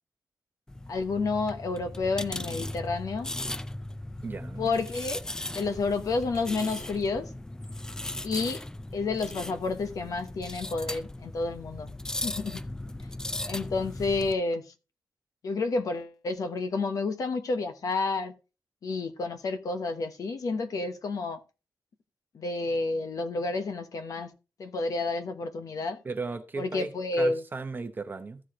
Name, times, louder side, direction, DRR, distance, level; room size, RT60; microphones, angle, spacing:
sound 1, 0.7-14.3, left 1 dB, 10° left, 0.4 m, -38 dB
voice 1, 0.9-3.3 4.6-5.2 5.5-7.3 8.2-8.6 8.9-11.9 12.2-12.6 13.5-14.7 15.4-18.3 18.8-21.4 22.3-24.3 24.6-26.0 26.6-27.4, left 3 dB, 60° left, 1.0 m, -30 dB
voice 2, 4.2-4.7 26.0-26.9 27.2-28.4, right 4 dB, 30° right, 0.8 m, -35 dB
14.5 x 4.8 x 3.6 m
wide cardioid pair, 150°, 7 cm